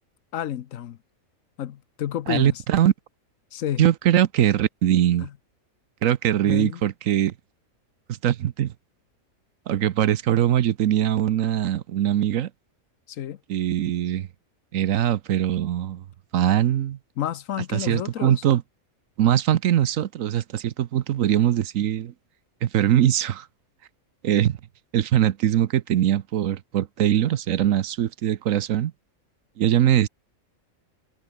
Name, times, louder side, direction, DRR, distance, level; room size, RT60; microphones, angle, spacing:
voice 1, 0.3-1.0 1.6-2.6 3.5-3.8 5.2-5.3 6.4-6.8 13.1-13.4 17.2-18.4, left 11 dB, 70° left, 1.1 m, -30 dB
voice 2, 2.3-2.9 3.8-5.3 6.0-7.3 8.2-8.7 9.7-12.5 13.5-14.3 14.7-16.0 16.3-17.0 17.7-18.6 19.2-22.1 22.6-23.5 24.2-24.6 24.9-28.9 29.6-30.1, right 11 dB, 70° right, 1.1 m, -22 dB
omnidirectional pair, 1.5 m